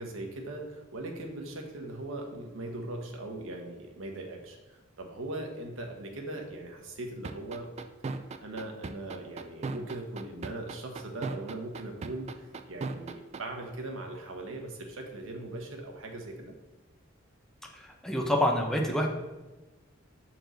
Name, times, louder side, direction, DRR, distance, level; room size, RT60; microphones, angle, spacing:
voice 1, 0.0-7.7 8.4-16.6, right 2 dB, 80° right, 2 dB, 1.0 m, -40 dB
sound 1, 7.2-13.4, right 3 dB, 35° right, 0.3 m, -36 dB
voice 2, 17.7-19.1, left 1 dB, 5° left, 0 dB, 0.7 m, -27 dB
6.2 x 4.5 x 4.0 m, 1.1 s
head